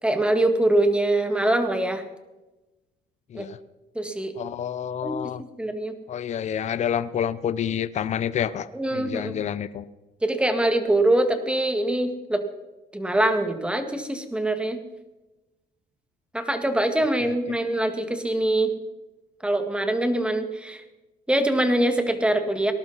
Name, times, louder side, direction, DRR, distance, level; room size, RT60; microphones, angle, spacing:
voice 1, 0.0-2.0 3.3-3.5 4.0-4.4 5.0-5.2 5.6-5.9 8.7-9.3 10.2-12.4 12.9-14.8 16.3-18.7 19.4-20.8 21.3-22.7, right 1 dB, 5° right, 7 dB, 1.8 m, -23 dB
voice 2, 4.4-5.4 6.1-9.8 17.2-17.5, left 9 dB, 45° left, 15 dB, 0.7 m, -29 dB
19.0 x 11.5 x 4.1 m, 1.1 s
cardioid pair, 110°, 17 cm